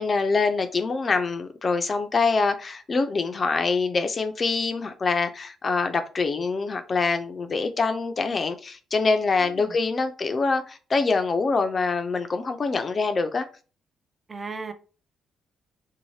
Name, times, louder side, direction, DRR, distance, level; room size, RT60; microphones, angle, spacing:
voice 1, 0.0-13.5, left 4 dB, 40° left, 0.4 m, -25 dB
voice 2, 9.4-9.8 14.3-14.7, right 4 dB, 30° right, 0.4 m, -36 dB
2.7 x 2.1 x 3.1 m
cardioid pair, 90°, 0 cm